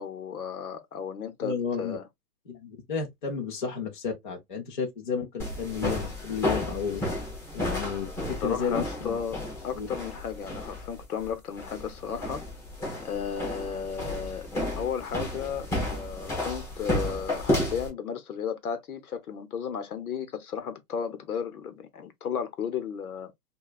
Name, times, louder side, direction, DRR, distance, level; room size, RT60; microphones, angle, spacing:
voice 1, 0.0-2.1 8.4-12.4 13.0-14.5 14.8-23.3, left 7 dB, 65° left, 0.9 m, -34 dB
voice 2, 1.4-2.0 2.5-7.0 7.5-9.2 9.8-9.9, left 6 dB, 30° left, 0.7 m, -32 dB
sound 1, 5.4-17.9, left 1 dB, 15° left, 2.5 m, -32 dB
5.2 x 2.3 x 2.3 m
hypercardioid pair, 180°, 47 cm